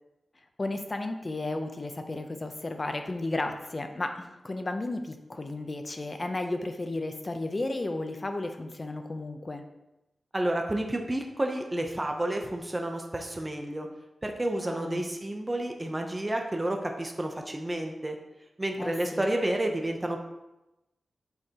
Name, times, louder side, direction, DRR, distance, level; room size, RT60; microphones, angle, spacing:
voice 1, 0.6-9.7 14.6-15.1 18.8-19.2, left 2 dB, 25° left, 6 dB, 0.6 m, -33 dB
voice 2, 10.3-13.9 14.2-18.2 18.6-20.2, right 1 dB, 15° right, 3 dB, 0.6 m, -30 dB
7.8 x 6.5 x 2.9 m, 0.95 s
wide cardioid pair, 175°, 0 cm